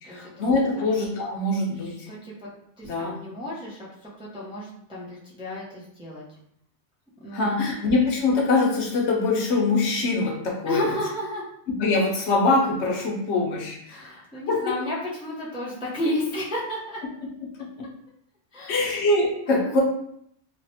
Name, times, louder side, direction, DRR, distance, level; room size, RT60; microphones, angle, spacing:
voice 1, 0.0-2.1 2.8-3.1 7.3-10.9 11.8-14.0 14.5-14.7 18.7-19.8, left 3 dB, 75° left, -1 dB, 1.0 m, -23 dB
voice 2, 1.8-2.5 2.8-6.2 7.2-7.6 10.6-11.5 13.9-17.0 18.5-19.0 19.5-19.7, left 1 dB, 5° right, -7 dB, 0.4 m, -32 dB
3.2 x 2.1 x 2.7 m, 0.71 s
omnidirectional pair, 1.2 m